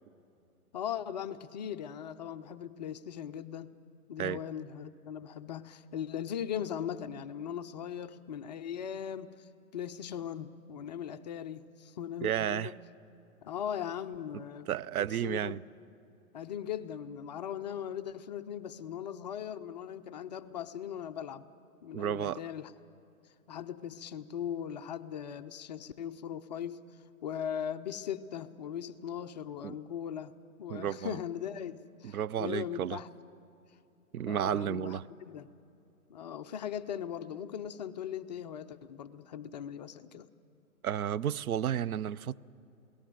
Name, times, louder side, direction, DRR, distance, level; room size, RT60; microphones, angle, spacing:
voice 1, 0.7-3.8 4.1-12.7 13.4-14.7 15.2-15.6 16.3-21.4 21.8-22.7 23.5-26.8 27.2-30.3 30.6-33.1 34.2-35.0 35.3-35.5 36.1-40.3, left 9 dB, 30° left, 0.4 m, -39 dB
voice 2, 12.2-12.7 14.7-15.6 21.9-22.4 29.6-29.7 30.7-31.2 32.0-33.0 34.1-35.0 40.8-42.4, right 10 dB, 75° right, 0.6 m, -32 dB
27.5 x 18.0 x 7.6 m
hypercardioid pair, 130°, 44 cm